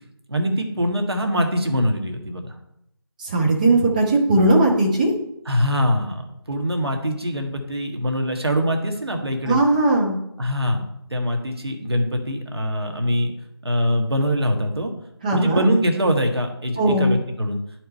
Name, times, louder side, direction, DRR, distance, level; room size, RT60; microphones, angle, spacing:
voice 1, 0.3-2.5 5.5-6.2 6.5-9.6 10.4-10.8 11.1-13.3 13.6-14.9 15.3-17.6, equal, 65° right, 3 dB, 1.5 m, -23 dB
voice 2, 3.2-5.1 9.5-10.2 15.2-15.6 16.8-17.1, right 2 dB, 15° right, -2 dB, 1.0 m, -18 dB
10.0 x 4.7 x 4.4 m, 0.78 s
figure-of-eight pair, 160°, 14 cm